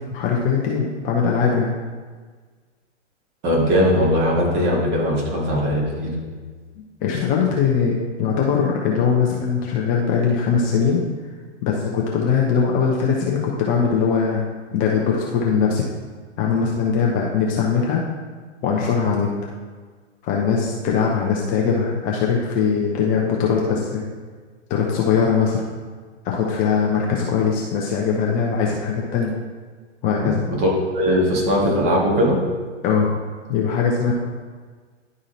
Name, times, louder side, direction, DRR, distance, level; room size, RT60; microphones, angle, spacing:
voice 1, 0.1-1.7 7.0-11.0 11.6-14.4 14.7-15.8 16.4-18.0 18.6-19.3 20.2-24.0 24.7-25.6 26.2-29.3 30.0-30.4 32.8-33.1 33.5-34.1, left 6 dB, 25° left, -2 dB, 0.7 m, -21 dB
voice 2, 3.4-6.2 30.2-30.3 30.6-30.7 31.0-32.4, equal, 35° right, -3 dB, 2.1 m, -19 dB
10.5 x 3.7 x 4.3 m, 1.5 s
figure-of-eight pair, 115°, 36 cm